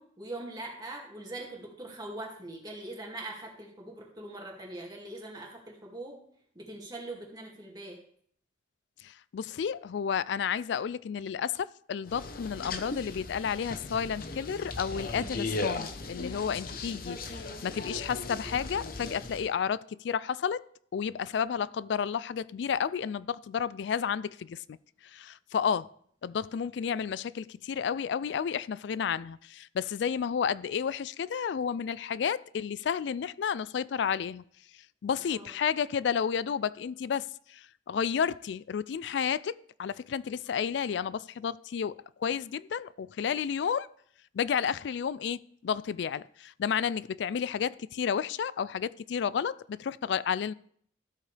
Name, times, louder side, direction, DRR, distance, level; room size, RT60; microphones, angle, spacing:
voice 1, 0.0-6.2 6.5-8.0 16.3-16.6 16.8-16.9 35.3-35.5, right 2 dB, 20° right, 2.2 m, -42 dB
voice 2, 9.0-20.6 20.9-24.8 25.1-25.9 26.2-34.4 35.0-39.5 39.8-43.9 44.3-50.5, left 7 dB, 65° left, 0.3 m, -31 dB
sound 1, 12.1-19.5, left 3 dB, 50° left, 0.9 m, -38 dB
13.0 x 8.2 x 3.3 m
head